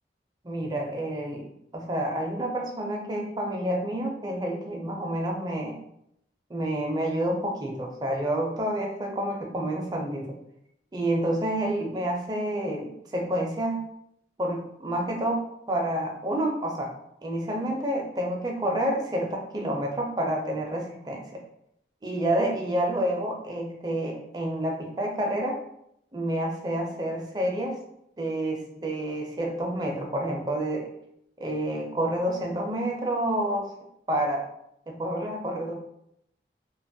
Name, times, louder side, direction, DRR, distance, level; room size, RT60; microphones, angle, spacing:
voice 1, 0.4-1.4 1.7-5.8 6.5-10.3 10.9-13.8 14.4-16.9 17.2-21.3 22.0-25.6 26.1-27.8 28.2-30.9 31.4-33.7 34.1-34.4 34.9-35.7, right 1 dB, 25° right, 1 dB, 0.4 m, -29 dB
2.8 x 2.2 x 2.6 m, 0.75 s
head